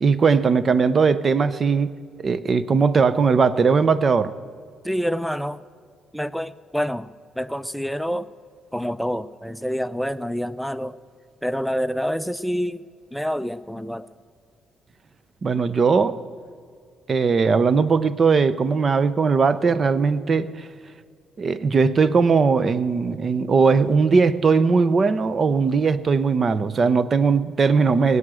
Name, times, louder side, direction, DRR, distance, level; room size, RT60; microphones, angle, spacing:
voice 1, 0.0-4.3 15.4-16.2 17.1-20.7 21.4-28.2, right 5 dB, 40° right, 0.7 m, -19 dB
voice 2, 4.8-5.6 6.1-8.3 8.7-11.0 11.4-12.8 13.1-14.1, equal, ahead, 0.5 m, -27 dB
17.0 x 9.8 x 7.7 m
cardioid pair, 90°, 0 cm